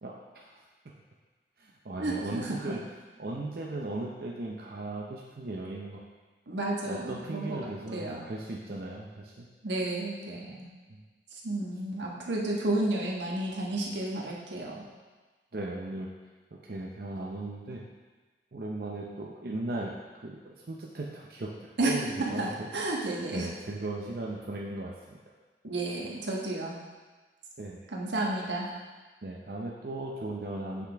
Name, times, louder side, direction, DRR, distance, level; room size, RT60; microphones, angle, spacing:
voice 1, 0.0-0.6 1.6-2.8 3.2-6.0 6.9-9.5 10.9-11.0 15.5-16.1 16.6-17.8 18.5-19.9 20.2-22.7 23.3-25.2 27.6-27.8 29.2-30.9, right 2 dB, 55° right, -2 dB, 0.6 m, -37 dB
voice 2, 2.0-2.6 6.5-8.2 9.6-10.7 11.4-14.8 21.8-22.5 22.7-23.5 25.6-26.8 27.9-28.7, right 2 dB, 85° right, -2 dB, 1.3 m, -32 dB
7.9 x 5.9 x 3.5 m, 1.3 s
head